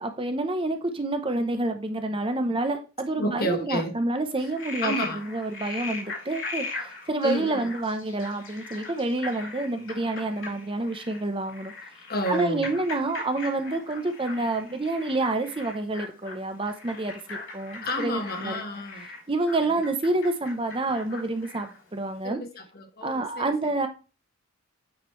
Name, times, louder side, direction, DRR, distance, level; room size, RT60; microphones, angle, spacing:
voice 1, 0.0-4.9 5.2-11.7 12.3-18.6 19.3-22.4 23.0-23.9, right 2 dB, 25° right, 0.7 m, -28 dB
voice 2, 3.2-4.0 4.4-4.5 4.8-5.2 7.2-7.7 12.1-12.7 17.8-19.1 19.6-19.8 22.2-23.7, equal, 45° left, 1.4 m, -31 dB
Frog, 4.4-21.8, left 3 dB, 60° left, 3.4 m, -39 dB
8.7 x 5.2 x 3.1 m
head